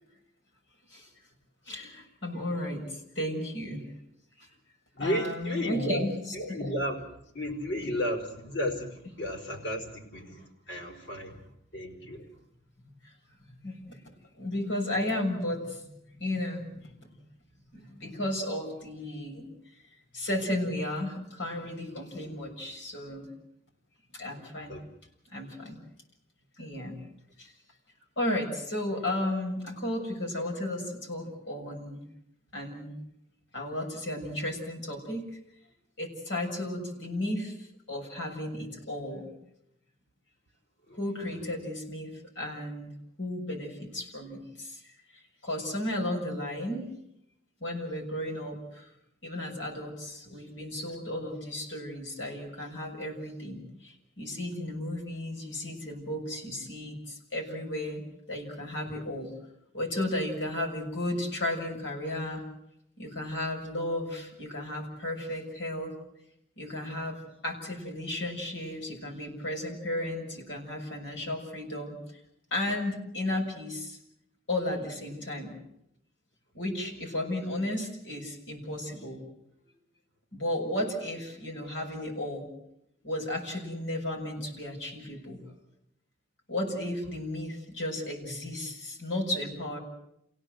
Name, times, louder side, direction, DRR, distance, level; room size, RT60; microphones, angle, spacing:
voice 1, 1.7-3.8 4.4-4.5 5.0-6.1 6.5-6.6 10.9-11.1 13.0-13.1 13.6-14.0 14.4-17.1 17.7-19.5 20.1-23.3 24.1-24.7 25.3-25.8 26.6-27.0 27.4-27.5 28.2-32.1 32.5-33.0 33.5-35.2 36.0-39.3 41.0-42.9 43.2-44.8 45.1-46.9 47.6-48.9 49.2-58.0 58.3-59.3 59.7-62.4 63.0-66.0 66.6-72.0 72.5-74.0 74.5-75.6 76.5-79.2 80.3-82.5 83.0-85.4 86.5-89.8, left 1 dB, 90° left, 0 dB, 7.0 m, -34 dB
voice 2, 4.9-7.0 7.3-11.4 11.7-12.3 24.7-24.8 40.9-41.3, equal, 65° left, 2 dB, 4.7 m, -33 dB
29.5 x 17.0 x 8.0 m, 0.78 s
head